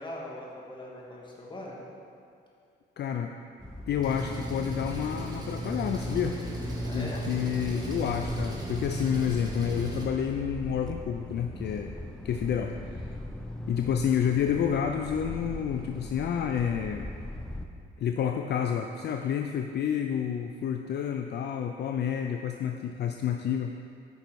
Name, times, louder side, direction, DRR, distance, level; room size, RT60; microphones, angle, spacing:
voice 1, 0.0-1.8 6.8-7.2, left 1 dB, 25° left, -3 dB, 1.9 m, -41 dB
voice 2, 3.0-3.3 3.9-6.4 6.9-11.9 12.2-13.1 13.7-17.1 18.0-23.7, left 8 dB, 60° left, 5 dB, 0.4 m, -29 dB
sound 1, 3.6-17.7, left 1 dB, 5° left, 0.6 m, -41 dB
Engine, 4.0-10.0, right 1 dB, 20° right, 1.6 m, -35 dB
9.3 x 5.5 x 4.6 m, 2.4 s
cardioid pair, 90°, 20 cm